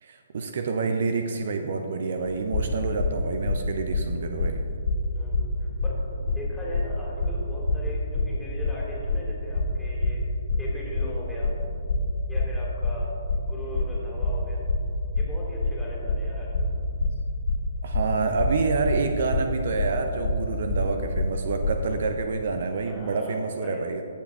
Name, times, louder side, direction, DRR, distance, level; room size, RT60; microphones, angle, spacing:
voice 1, 0.0-4.6 17.8-24.0, right 4 dB, 55° right, 6 dB, 0.6 m, -28 dB
sound 1, 2.3-21.7, left 3 dB, 50° left, 1.6 m, -26 dB
voice 2, 5.1-10.2 10.6-11.5 12.3-14.6 15.2-16.7 22.8-23.9, equal, 5° left, -6 dB, 2.5 m, -38 dB
16.5 x 5.8 x 3.5 m, 2.7 s
figure-of-eight pair, 130°, 0 cm